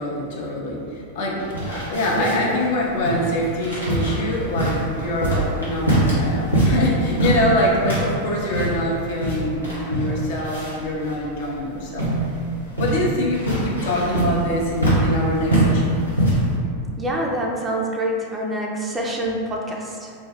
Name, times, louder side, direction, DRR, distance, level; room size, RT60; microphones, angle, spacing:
voice 1, 0.0-1.4 1.7-12.1 12.8-16.0, left 1 dB, 50° left, -3 dB, 0.5 m, -24 dB
sound 1, 1.4-16.6, right 1 dB, 90° left, 0.7 m, -23 dB
voice 2, 17.0-20.1, right 1 dB, 15° right, -2 dB, 0.3 m, -26 dB
2.1 x 2.1 x 3.2 m, 2.3 s
figure-of-eight pair, 90°, 0 cm